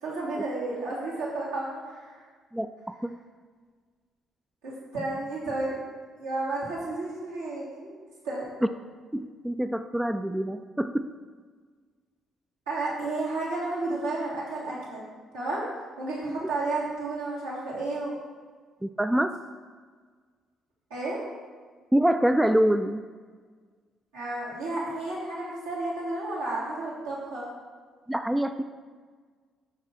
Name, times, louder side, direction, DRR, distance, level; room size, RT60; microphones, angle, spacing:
voice 1, 0.0-2.2 4.6-5.7 6.2-7.9 8.2-8.5 12.7-15.0 15.3-15.6 16.0-18.1 20.9-21.2 24.1-27.4, right 2 dB, 75° right, -8 dB, 2.2 m, -32 dB
voice 2, 2.5-3.2 9.1-11.1 16.3-16.4 18.8-19.3 21.9-23.0 28.1-28.6, right 1 dB, 10° right, 9 dB, 0.3 m, -25 dB
6.0 x 5.9 x 4.3 m, 1.5 s
figure-of-eight pair, 45°, 0 cm